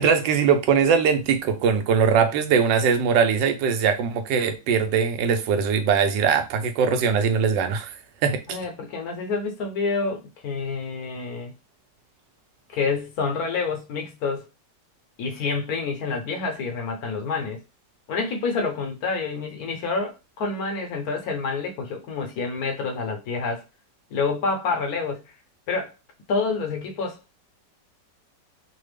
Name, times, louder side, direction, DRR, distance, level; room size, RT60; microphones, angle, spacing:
voice 1, 0.0-7.9 8.2-8.4, right 6 dB, 80° right, 1.2 m, -21 dB
voice 2, 8.5-11.5 12.7-14.5 15.2-17.6 18.1-23.7 24.1-25.2 25.7-25.9 26.3-27.2, left 4 dB, 65° left, 1.0 m, -28 dB
3.3 x 2.0 x 3.2 m
omnidirectional pair, 1.9 m